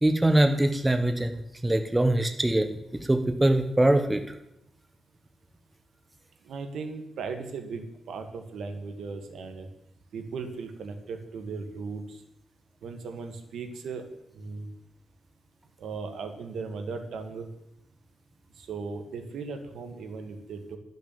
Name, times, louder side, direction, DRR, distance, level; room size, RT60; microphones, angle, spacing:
voice 1, 0.0-2.8 3.1-4.2, right 1 dB, 15° right, 6 dB, 1.1 m, -23 dB
voice 2, 6.4-9.7 10.1-12.2 12.8-14.0 14.3-14.7 15.8-17.5 18.6-20.8, right 4 dB, 85° right, 6 dB, 1.5 m, -37 dB
12.5 x 6.5 x 7.0 m, 0.82 s
cardioid pair, 115°, 0 cm